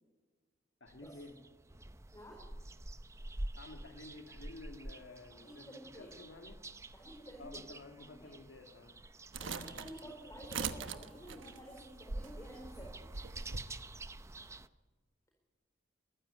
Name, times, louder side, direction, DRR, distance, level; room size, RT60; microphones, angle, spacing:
voice 1, 0.8-1.4 3.5-6.7 7.4-9.0 9.4-9.8, left 2 dB, 75° left, 4 dB, 1.7 m, -52 dB
Garden Sunny Day, 0.9-14.7, right 2 dB, 15° right, 0.6 m, -49 dB
voice 2, 2.1-2.4 5.4-6.1 6.9-7.6 7.9-8.3 9.4-13.1, equal, 15° left, -1 dB, 4.4 m, -51 dB
sound 1, 9.3-13.7, right 5 dB, 80° right, 1.2 m, -42 dB
22.0 x 15.0 x 8.5 m, 1.4 s
head